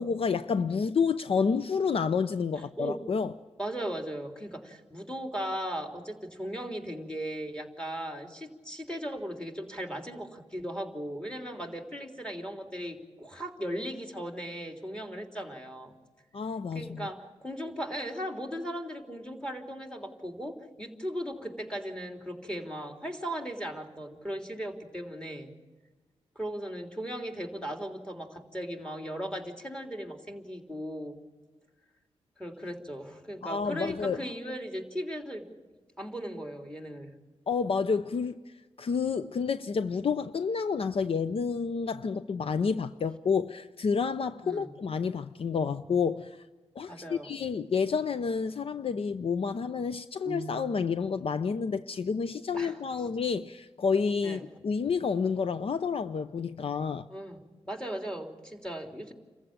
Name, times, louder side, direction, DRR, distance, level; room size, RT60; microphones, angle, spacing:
voice 1, 0.0-3.3 16.3-17.1 33.4-34.2 37.5-38.4 38.8-46.4 46.8-57.1, left 5 dB, 60° left, 0.6 m, -29 dB
voice 2, 2.5-3.0 3.6-15.9 16.7-25.5 26.3-31.2 32.4-35.5 36.0-37.1 44.4-44.7 46.9-47.3 52.5-52.8 54.2-54.4 57.1-57.4 57.6-59.1, equal, 10° left, 3.4 m, -37 dB
sound 1, 50.2-51.3, right 4 dB, 50° right, 0.8 m, -42 dB
28.5 x 15.0 x 8.8 m
cardioid pair, 80°, 11 cm